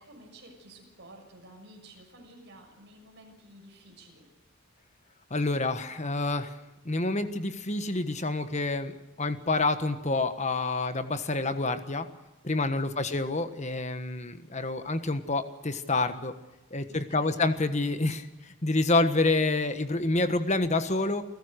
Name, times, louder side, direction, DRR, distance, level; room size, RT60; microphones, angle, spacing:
voice 1, 0.0-4.3 16.9-17.5, right 1 dB, 55° right, 2 dB, 6.5 m, -52 dB
voice 2, 5.3-6.5 6.8-12.1 12.4-16.3 16.7-18.3 18.6-21.2, left 2 dB, 35° left, 10 dB, 1.4 m, -28 dB
29.0 x 15.0 x 6.6 m, 1.0 s
head